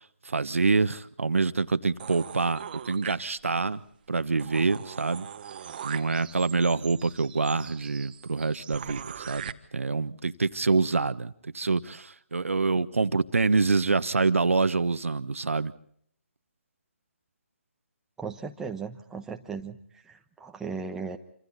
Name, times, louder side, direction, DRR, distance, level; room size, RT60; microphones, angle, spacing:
voice 1, 0.2-3.8 4.1-5.3 5.8-15.7, right 4 dB, 80° right, 12 dB, 1.3 m, -26 dB
sound 1, 2.0-3.7 4.1-4.2 4.4-9.5, right 8 dB, 40° right, 1.3 m, -41 dB
voice 2, 18.2-21.2, right 5 dB, 5° right, 3 dB, 1.2 m, -37 dB
27.0 x 26.5 x 4.2 m, 0.65 s
figure-of-eight pair, 150°, 7 cm